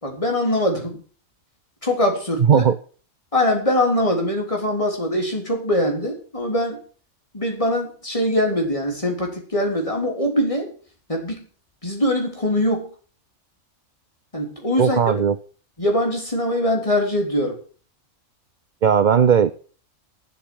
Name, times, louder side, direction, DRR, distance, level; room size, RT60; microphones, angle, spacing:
voice 1, 0.0-1.0 1.8-2.7 3.3-6.8 7.3-10.7 11.1-11.5 11.8-12.9 14.3-15.0 15.8-17.6, left 1 dB, 25° left, 1 dB, 3.6 m, -22 dB
voice 2, 2.4-2.8 14.8-15.4 18.8-19.5, right 7 dB, 50° right, 13 dB, 0.6 m, -16 dB
10.0 x 8.0 x 8.6 m, 0.42 s
omnidirectional pair, 1.4 m